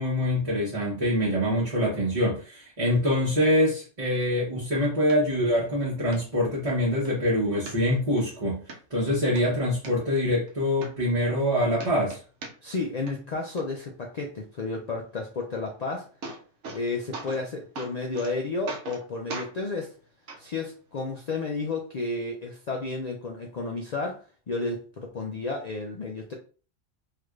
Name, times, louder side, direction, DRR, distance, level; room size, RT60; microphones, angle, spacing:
voice 1, 0.0-8.6 8.9-12.2, left 1 dB, 30° right, -7 dB, 0.9 m, -25 dB
sound 1, 5.1-5.2 5.7-5.8 6.1-6.2 6.7-7.1 7.7-8.2 8.7-8.8 9.2-9.9 10.5-10.6 10.8-11.5 11.8-12.8 13.1-13.6 15.7-15.8 16.0-16.8 17.1-17.5 17.8-18.3 18.7-19.0 19.3-19.5 20.3-20.4 21.3-21.4, right 3 dB, 70° right, 0.9 m, -39 dB
voice 2, 12.6-16.1 16.7-19.9 20.4-24.2 24.5-26.3, left 3 dB, 65° left, 0 dB, 0.4 m, -32 dB
3.2 x 2.8 x 2.3 m, 0.38 s
omnidirectional pair, 1.3 m